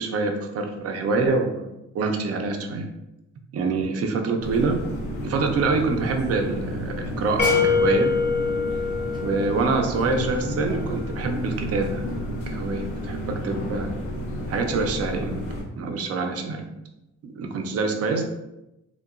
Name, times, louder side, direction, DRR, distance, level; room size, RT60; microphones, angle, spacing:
voice 1, 0.0-1.7 1.9-2.9 3.5-4.8 5.2-8.1 9.2-12.0 12.5-13.9 14.5-15.4 15.8-16.6 17.2-18.2, right 3 dB, 50° right, 4 dB, 0.5 m, -25 dB
sound 1, 4.4-15.6, left 1 dB, 85° left, 0.7 m, -32 dB
sound 2, 7.4-10.3, left 5 dB, 35° left, 0.6 m, -24 dB
sound 3, 7.4-12.3, right 1 dB, 15° right, 0.7 m, -41 dB
2.8 x 2.2 x 2.4 m, 0.93 s
cardioid pair, 90°, 30 cm